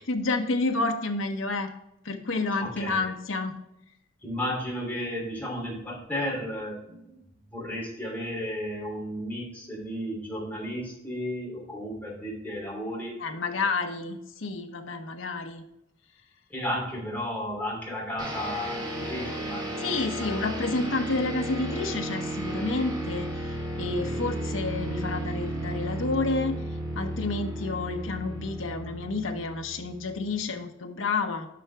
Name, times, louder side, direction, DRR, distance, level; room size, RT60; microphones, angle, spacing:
voice 1, 0.0-1.7 2.0-3.5 13.2-15.6 19.8-26.6 26.9-31.5, left 3 dB, 75° left, 5 dB, 0.9 m, -30 dB
voice 2, 2.6-3.1 4.2-7.2 7.5-13.6 16.5-19.9 20.2-20.3, equal, 10° left, -4 dB, 3.0 m, -34 dB
sound 1, 18.2-30.4, right 1 dB, 20° right, 1.5 m, -34 dB
7.5 x 5.9 x 3.4 m, 0.83 s
head